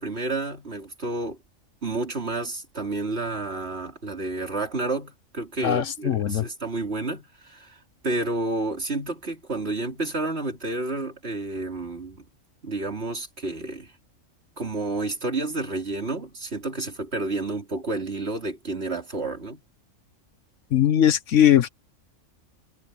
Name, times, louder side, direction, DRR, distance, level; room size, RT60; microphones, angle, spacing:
voice 1, 0.0-1.4 1.8-7.8 8.0-12.2 12.6-13.9 14.6-19.6, right 2 dB, 50° right, 3.6 m, -30 dB
voice 2, 5.6-6.4 20.7-21.7, left 10 dB, 70° left, 1.2 m, -20 dB
omnidirectional pair, 1.4 m